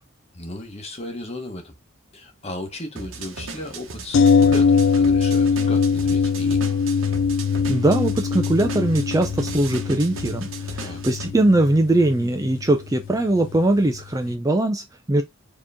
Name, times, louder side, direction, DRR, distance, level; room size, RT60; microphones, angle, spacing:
voice 1, 0.3-1.7 2.1-6.6 10.8-11.0, left 1 dB, 30° left, 1.1 m, -35 dB
sound 1, 3.0-11.3, right 4 dB, 70° right, 1.0 m, -37 dB
sound 2, 4.1-14.0 14.3-14.4, left 5 dB, 60° left, 0.3 m, -22 dB
voice 2, 7.7-15.2, right 1 dB, 15° right, 0.4 m, -21 dB
4.5 x 3.0 x 3.5 m
head